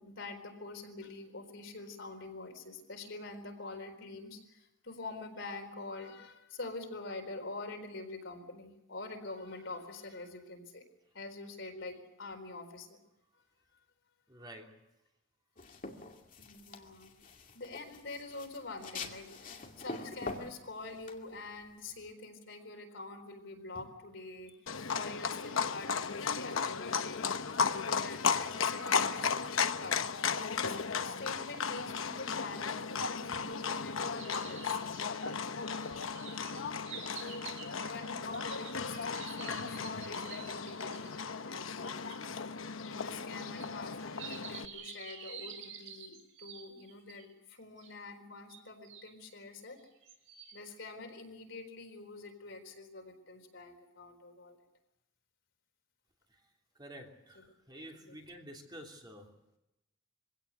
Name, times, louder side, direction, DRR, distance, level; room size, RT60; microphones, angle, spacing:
voice 1, 0.0-10.8 11.1-13.0 16.4-17.1 17.5-24.6 24.9-27.3 27.8-30.0 30.4-35.4 37.2-37.5 37.8-39.0 39.3-42.3 42.8-49.8 50.5-54.6 58.1-58.2, left 3 dB, 65° left, 4 dB, 4.2 m, -46 dB
voice 2, 14.3-14.8 56.3-56.4 56.7-59.3, equal, 20° right, 1 dB, 3.1 m, -50 dB
sound 1, 15.6-22.1, left 3 dB, 40° left, 2.4 m, -45 dB
Livestock farm animals working animals, 24.7-44.7, left 5 dB, 80° left, 1.0 m, -35 dB
sound 2, 34.2-41.2 42.1-42.2 43.5-47.2 47.8-47.9 48.5-49.1 49.8-50.6, right 6 dB, 80° right, 5.3 m, -49 dB
24.0 x 17.0 x 8.1 m, 0.93 s
head